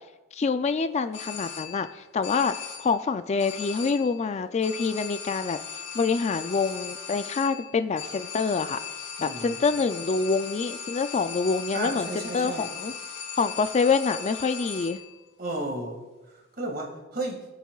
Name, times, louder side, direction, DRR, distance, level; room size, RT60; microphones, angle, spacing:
voice 1, 0.3-5.6 5.9-8.8 9.2-12.9 13.4-15.0, left 4 dB, 35° left, 11 dB, 0.4 m, -26 dB
sound 1, 1.1-1.9 2.2-3.0 3.4-4.2 4.6-15.1, left 6 dB, 80° left, 2.3 m, -38 dB
voice 2, 9.2-9.6 11.7-12.7 15.4-17.5, right 2 dB, 50° right, 2 dB, 2.0 m, -34 dB
22.5 x 8.3 x 2.4 m, 1.2 s
head